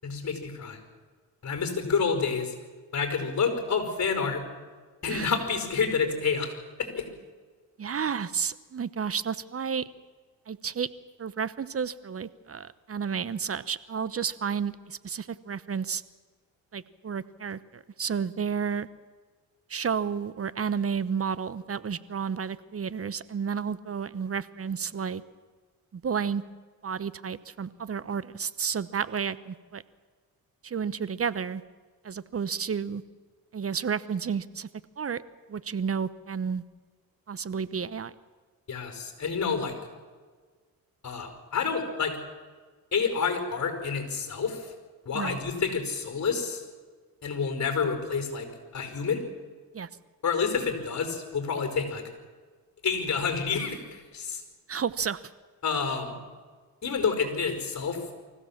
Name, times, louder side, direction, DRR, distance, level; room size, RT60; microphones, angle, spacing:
voice 1, 0.0-0.8 1.4-2.5 2.9-4.4 5.0-7.1 38.7-39.8 41.0-42.2 42.9-44.7 45.0-46.6 47.2-48.5 48.7-49.2 50.2-52.0 52.8-54.4 55.6-56.2 56.8-58.0, left 5 dB, 50° left, 6 dB, 5.1 m, -28 dB
voice 2, 5.1-5.4 7.8-9.8 10.5-10.9 11.2-16.0 16.7-18.9 19.7-25.2 25.9-26.4 26.8-29.8 30.6-31.6 32.0-33.0 33.5-34.7 35.0-35.2 35.5-36.6 37.3-38.1 45.1-45.4 49.7-49.9 54.7-55.2, right 6 dB, 40° right, 17 dB, 1.0 m, -31 dB
24.5 x 15.5 x 7.4 m, 1.5 s
cardioid pair, 70°, 37 cm